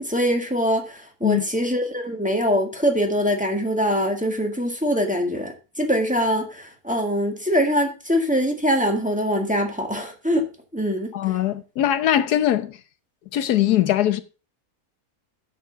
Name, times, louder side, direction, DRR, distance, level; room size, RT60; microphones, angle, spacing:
voice 1, 0.0-11.1, equal, 5° right, 1.7 m, -23 dB
voice 2, 11.1-12.8 13.3-14.2, left 12 dB, 90° left, 1.4 m, -21 dB
8.4 x 7.1 x 5.9 m
omnidirectional pair, 1.6 m